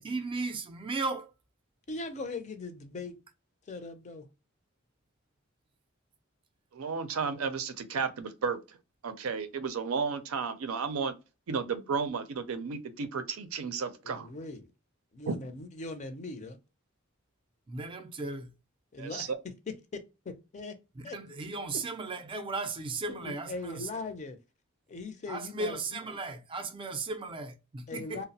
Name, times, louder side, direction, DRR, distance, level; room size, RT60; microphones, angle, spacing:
voice 1, 0.0-1.3 17.7-18.5 21.0-23.9 25.3-28.2, right 3 dB, 25° right, 0.4 m, -36 dB
voice 2, 1.9-3.2 3.7-4.3 14.0-14.7 15.1-16.6 18.9-19.3 19.9-20.8 21.0-21.2 23.1-24.4 24.9-26.0 27.9-28.2, left 3 dB, 35° left, 0.4 m, -40 dB
voice 3, 6.7-8.8 9.0-11.1 11.5-14.3 15.3-15.4 19.0-19.4, right 5 dB, 80° right, 0.5 m, -33 dB
2.7 x 2.0 x 2.6 m
head